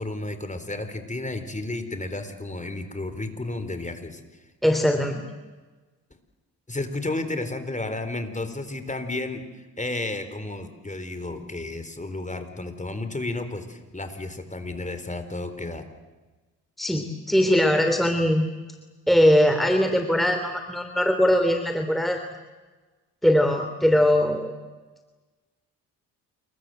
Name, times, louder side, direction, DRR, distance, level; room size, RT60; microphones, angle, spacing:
voice 1, 0.0-4.2 6.7-9.4 9.8-15.8, left 2 dB, 20° left, 9 dB, 4.2 m, -32 dB
voice 2, 4.6-5.2 16.8-18.5 19.1-22.2 23.2-24.5, equal, ahead, 6 dB, 3.0 m, -21 dB
28.0 x 23.0 x 7.9 m, 1.2 s
cardioid pair, 65°, 40 cm